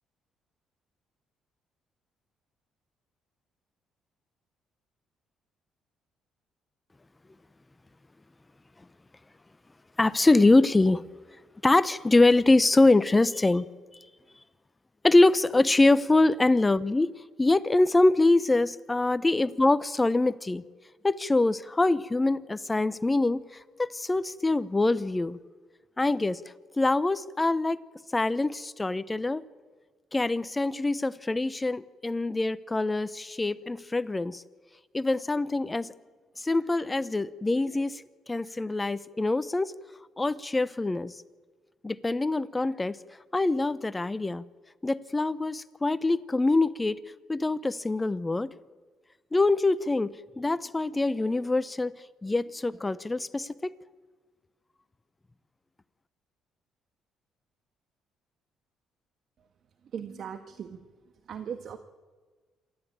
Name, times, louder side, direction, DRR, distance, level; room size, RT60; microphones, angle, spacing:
voice 1, 10.0-11.0 11.6-13.7 15.0-20.6 21.0-25.4 26.0-26.4 26.8-27.8 28.1-29.4 30.1-34.4 34.9-35.9 36.4-39.7 40.2-41.2 41.8-43.0 43.3-44.4 44.8-47.0 47.3-48.5 49.3-53.7, left 2 dB, 20° left, 0.8 m, -24 dB
voice 2, 59.9-60.8 61.3-61.8, right 7 dB, 60° right, 1.5 m, -38 dB
27.5 x 13.0 x 8.9 m
supercardioid pair, 75°, 0 cm